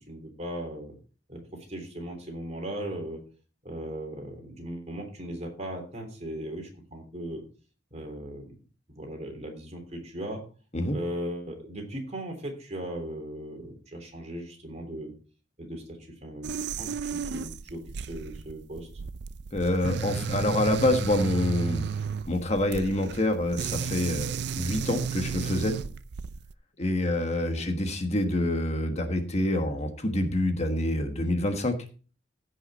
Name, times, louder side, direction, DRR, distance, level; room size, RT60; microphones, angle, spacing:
voice 1, 0.1-0.9 1.3-3.2 3.6-7.4 7.9-8.5 8.9-10.4 10.9-15.1 15.6-15.8 16.2-18.9 27.5-27.7, right 1 dB, 40° right, 3 dB, 3.4 m, -38 dB
sound 1, 16.4-26.5, right 6 dB, 65° right, 0.5 m, -33 dB
voice 2, 19.5-21.8 22.3-25.8 26.8-31.8, left 1 dB, 35° left, 6 dB, 1.4 m, -26 dB
15.5 x 5.8 x 4.2 m, 0.37 s
head